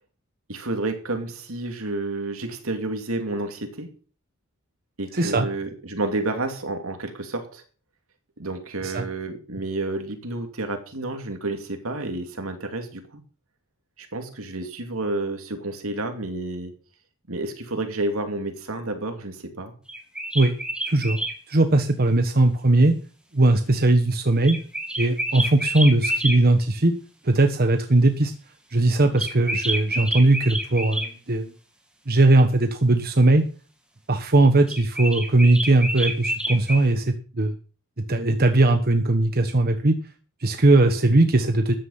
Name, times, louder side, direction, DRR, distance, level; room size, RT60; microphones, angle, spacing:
voice 1, 0.5-3.9 5.0-7.6 8.4-13.2 14.0-16.7 17.3-19.7, right 2 dB, 80° right, 2.7 m, -30 dB
voice 2, 5.1-5.5 8.8-9.0 20.3-20.5 20.9-21.2 21.5-22.9 23.3-24.6 25.0-26.9 27.2-28.3 28.7-31.5 32.1-33.4 34.1-37.6 38.1-39.9 40.4-41.7, right 2 dB, 45° right, 1.2 m, -19 dB
sound 1, 19.9-21.4 24.4-26.4 29.2-31.1 34.7-36.8, right 1 dB, 5° right, 2.4 m, -28 dB
14.0 x 9.9 x 5.7 m
head